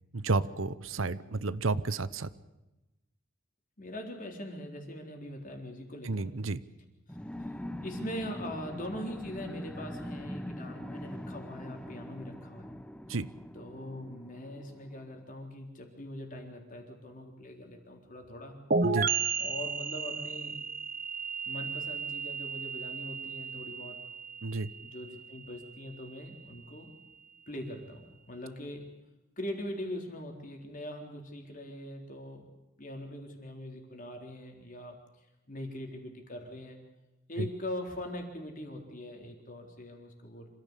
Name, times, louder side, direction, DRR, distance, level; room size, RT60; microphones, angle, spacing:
voice 1, 0.1-2.3 6.0-6.6 13.1-13.3 18.8-19.1 24.4-24.7 37.4-37.5, right 3 dB, 90° right, 16 dB, 0.9 m, -31 dB
voice 2, 3.8-6.3 7.4-7.5 7.8-12.7 13.5-18.6 19.4-20.6 21.4-24.0 24.8-26.9 27.5-28.8 29.4-32.4 32.8-35.0 35.5-36.8 37.3-40.5, left 1 dB, 45° left, 2 dB, 3.9 m, -42 dB
sound 1, 7.1-15.2, equal, 5° left, 0.8 m, -42 dB
sound 2, 18.7-26.3, right 5 dB, 45° right, 0.9 m, -34 dB
26.5 x 14.5 x 8.3 m, 1.0 s
head